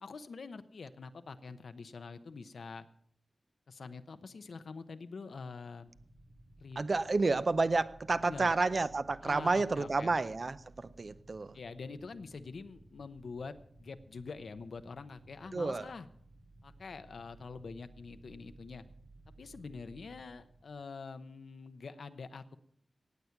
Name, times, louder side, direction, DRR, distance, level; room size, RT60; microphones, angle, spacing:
voice 1, 0.0-2.9 3.7-5.9 6.6-6.9 8.2-8.6 9.2-10.2 11.5-16.1 16.6-18.8 19.4-22.6, left 4 dB, 85° left, 11 dB, 0.8 m, -45 dB
sound 1, 5.8-21.0, right 2 dB, 80° right, 3.9 m, -58 dB
voice 2, 6.8-11.5 15.5-15.9, right 3 dB, 50° right, 14 dB, 0.6 m, -30 dB
18.0 x 8.1 x 5.9 m, 0.65 s
wide cardioid pair, 80°, 0 cm